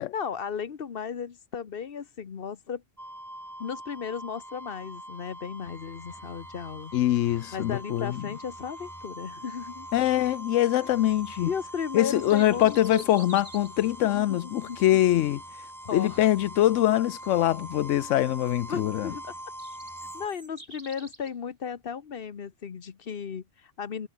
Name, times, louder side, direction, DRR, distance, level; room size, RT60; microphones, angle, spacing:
voice 1, 0.1-2.8 3.6-6.9 7.5-9.9 11.5-13.0 14.0-14.8 15.8-16.2 18.7-19.3 20.1-24.1, left 7 dB, 50° left, 1.2 m, -35 dB
sound 1, 3.0-20.3, right 1 dB, 15° right, 4.7 m, -43 dB
voice 2, 6.9-8.3 9.9-11.5 11.9-15.4 15.9-19.1, left 13 dB, 85° left, 0.9 m, -23 dB
sound 2, 11.9-13.8 19.2-21.3, right 2 dB, 35° right, 3.6 m, -47 dB
omnidirectional pair, 1.3 m